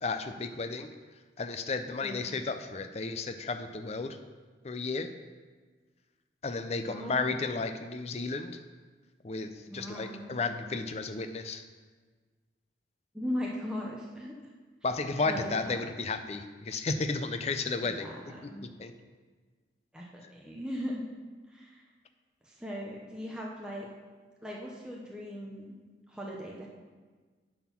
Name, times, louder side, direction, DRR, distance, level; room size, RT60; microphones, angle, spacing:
voice 1, 0.0-0.9 1.4-4.2 4.6-5.1 6.4-8.6 9.2-11.6 14.8-18.1 18.4-18.5 18.8-18.9, left 3 dB, 35° left, 8 dB, 0.5 m, -33 dB
voice 2, 6.9-7.6 9.7-10.5 13.1-14.3 15.2-15.8 17.8-18.7 19.9-21.0 21.5-21.8 22.4-23.9 24.4-25.7 26.1-26.7, equal, 5° right, -3 dB, 0.7 m, -39 dB
9.3 x 4.4 x 5.8 m, 1.4 s
head